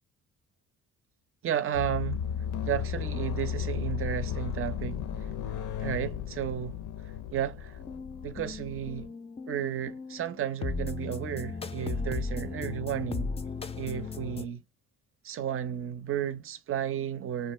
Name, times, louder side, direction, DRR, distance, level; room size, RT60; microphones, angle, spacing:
voice 1, 1.4-2.3 2.6-5.4 5.8-7.8 8.2-9.1 9.5-13.3 13.8-14.6 15.2-17.5, right 10 dB, 45° right, 0.5 m, -33 dB
sound 1, 1.7-9.1, left 8 dB, 75° left, 0.5 m, -35 dB
sound 2, 7.8-14.5, left 4 dB, 20° left, 0.3 m, -36 dB
2.5 x 2.3 x 3.0 m
cardioid pair, 90°, 30 cm